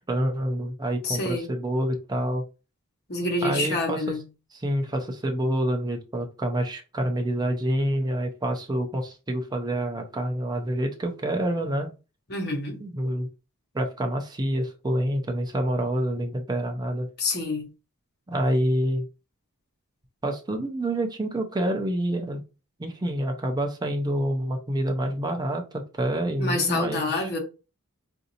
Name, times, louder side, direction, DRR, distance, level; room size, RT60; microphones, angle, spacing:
voice 1, 0.1-2.4 3.4-4.1 4.5-11.9 12.8-13.3 13.7-17.1 18.3-19.0 20.2-22.4 22.8-27.3, right 1 dB, 20° right, 0.5 m, -27 dB
voice 2, 1.0-1.5 3.1-4.2 12.3-12.8 17.2-17.7 26.4-27.4, left 2 dB, 50° left, 1.1 m, -27 dB
4.0 x 2.6 x 2.7 m
head